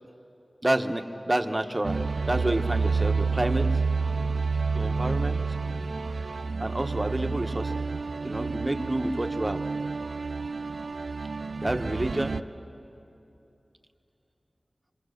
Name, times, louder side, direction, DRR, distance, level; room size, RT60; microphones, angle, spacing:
voice 1, 0.6-3.7 4.7-5.4 6.6-7.7 8.2-9.6 11.6-12.4, right 1 dB, 25° right, 6 dB, 1.2 m, -29 dB
sound 1, 1.8-12.4, right 4 dB, 75° right, 0.4 m, -29 dB
26.0 x 24.0 x 6.6 m, 2.8 s
wide cardioid pair, 70°, 0 cm